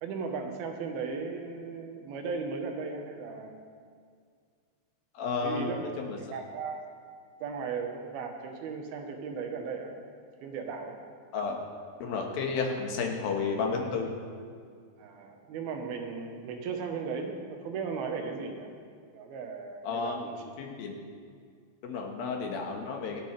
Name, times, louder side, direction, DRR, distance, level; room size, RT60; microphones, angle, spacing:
voice 1, 0.0-3.6 5.4-5.8 6.3-6.9 7.4-9.9 10.4-11.0 15.0-18.7 19.1-20.3, right 5 dB, 80° right, 4 dB, 3.0 m, -36 dB
voice 2, 5.1-5.7 6.0-6.2 11.3-11.6 12.0-14.1 19.8-20.2 20.6-20.9 21.8-23.2, left 4 dB, 75° left, 1 dB, 3.1 m, -32 dB
24.5 x 9.0 x 3.3 m, 2.1 s
omnidirectional pair, 4.4 m